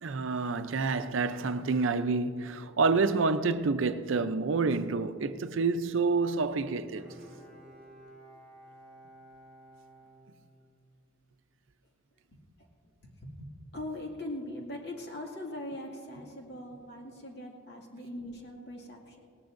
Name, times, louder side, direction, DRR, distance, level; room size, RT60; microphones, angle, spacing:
voice 1, 0.0-7.1, right 4 dB, 80° right, 0.5 m, -28 dB
Bowed string instrument, 6.5-11.0 11.5-11.6, right 1 dB, 5° left, 4.1 m, -54 dB
voice 2, 12.3-12.7 13.0-19.2, left 1 dB, 55° left, 2.2 m, -41 dB
19.0 x 18.0 x 2.6 m
head